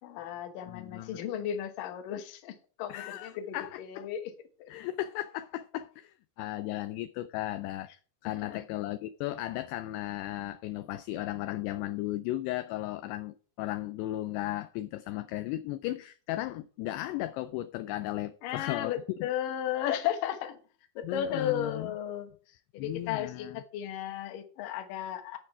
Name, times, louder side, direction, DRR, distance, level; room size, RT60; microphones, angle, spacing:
voice 1, 0.0-4.3 4.6-4.7 6.7-6.8 8.2-8.6 18.4-20.6 21.0-22.3 22.7-25.4, left 10 dB, 65° left, 2.3 m, -35 dB
voice 2, 0.7-1.2 2.9-4.1 4.7-7.9 8.2-18.9 19.2-19.3 21.0-21.9 22.8-23.6, left 15 dB, 85° left, 2.4 m, -36 dB
14.0 x 4.7 x 4.7 m
omnidirectional pair, 5.1 m